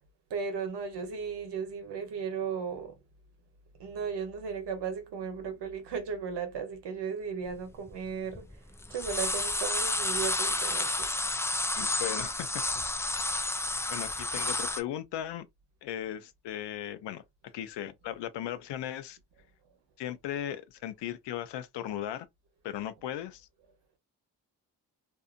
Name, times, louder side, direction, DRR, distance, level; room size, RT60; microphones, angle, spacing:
voice 1, 0.3-2.9 3.8-8.5 8.9-11.1, right 6 dB, 80° right, 1.0 m, -35 dB
sound 1, 7.5-7.6 7.9-8.5 8.8-14.8, left 2 dB, 5° left, 0.3 m, -31 dB
voice 2, 11.7-12.6 13.2-13.5 13.9-15.4 15.8-19.2 20.0-22.3 22.6-23.5, left 11 dB, 80° left, 0.6 m, -37 dB
2.7 x 2.5 x 2.4 m
cardioid pair, 60°, 41 cm